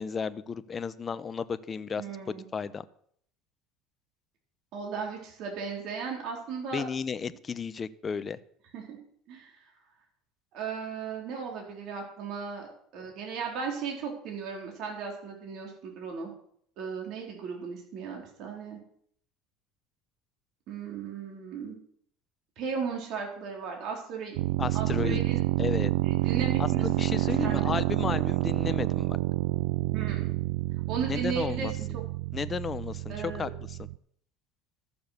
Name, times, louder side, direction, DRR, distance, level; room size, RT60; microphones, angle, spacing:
voice 1, 0.0-2.0 2.5-2.8 6.7-8.4 24.6-25.2 25.6-25.9 26.6-29.2 31.1-31.7 32.3-33.9, left 6 dB, 25° left, 14 dB, 0.7 m, -33 dB
voice 2, 2.0-2.5 4.7-6.8 8.7-9.0 9.3-9.6 10.5-16.3 16.8-18.8 20.7-21.8 22.6-24.4 24.7-25.4 26.0-26.9 27.2-27.7 29.9-30.4 30.9-32.0 33.1-33.5, right 6 dB, 55° right, 0 dB, 3.9 m, -36 dB
sound 1, 24.4-34.0, right 19 dB, 85° right, 0.4 m, -28 dB
13.5 x 7.0 x 6.6 m, 0.64 s
supercardioid pair, 130°, 0 cm